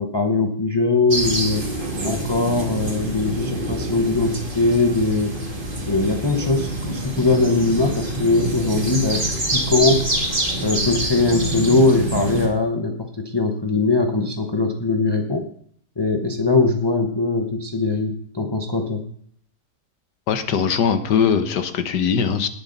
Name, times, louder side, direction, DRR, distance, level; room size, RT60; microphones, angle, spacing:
voice 1, 0.0-1.6 2.0-5.3 5.8-10.1 10.6-15.5 16.0-19.0, left 3 dB, 20° left, 3 dB, 0.8 m, -21 dB
sound 1, 1.1-12.5, right 1 dB, 30° right, 2.4 m, -26 dB
voice 2, 20.3-22.5, left 7 dB, 75° left, 9 dB, 1.6 m, -20 dB
19.0 x 7.4 x 4.0 m, 0.62 s
omnidirectional pair, 1.8 m